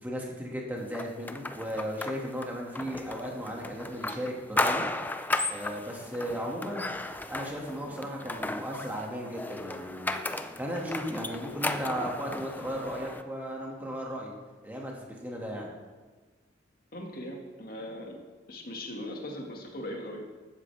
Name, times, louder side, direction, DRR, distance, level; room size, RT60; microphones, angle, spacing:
voice 1, 0.0-4.9 5.5-6.9 7.3-10.2 10.5-14.4 14.6-15.7, equal, 10° right, -2 dB, 2.2 m, -36 dB
sound 1, 0.9-13.2, left 2 dB, 10° left, 0.4 m, -35 dB
voice 2, 16.9-18.2 18.5-20.3, left 1 dB, 50° left, 0 dB, 2.1 m, -39 dB
15.5 x 12.5 x 3.5 m, 1.3 s
head